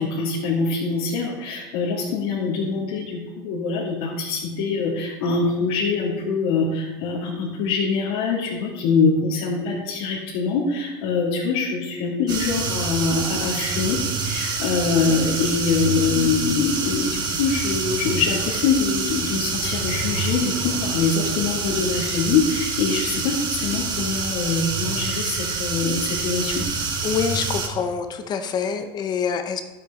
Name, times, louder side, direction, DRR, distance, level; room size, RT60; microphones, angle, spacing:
voice 1, 0.0-26.6, left 4 dB, 75° left, -7 dB, 2.6 m, -24 dB
sound 1, 12.3-27.7, right 4 dB, 35° right, 1.8 m, -27 dB
voice 2, 27.0-29.6, left 6 dB, 35° left, 8 dB, 0.8 m, -26 dB
12.0 x 8.5 x 3.8 m, 1.1 s
supercardioid pair, 125°, 12 cm